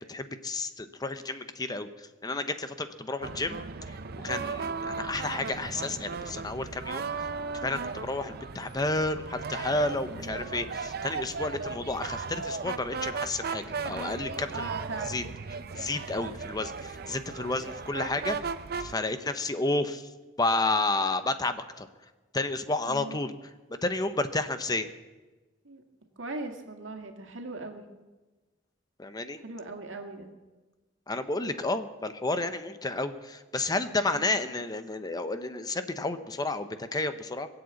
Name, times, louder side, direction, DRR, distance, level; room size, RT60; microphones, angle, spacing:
voice 1, 0.0-3.6 3.9-7.3 7.6-14.7 15.1-15.2 15.7-18.4 18.8-20.1 20.4-21.9 22.3-23.3 23.8-24.9 29.0-29.4 31.1-37.5, left 2 dB, 20° left, 10 dB, 0.8 m, -31 dB
sound 1, 3.2-18.9, right 4 dB, 55° right, 0.7 m, -36 dB
voice 2, 10.1-10.4 14.5-15.2 22.9-23.2 25.6-25.8 26.2-27.9 29.4-30.3 34.1-34.4, right 3 dB, 85° right, 4 dB, 2.1 m, -39 dB
21.5 x 7.9 x 8.3 m, 1.2 s
head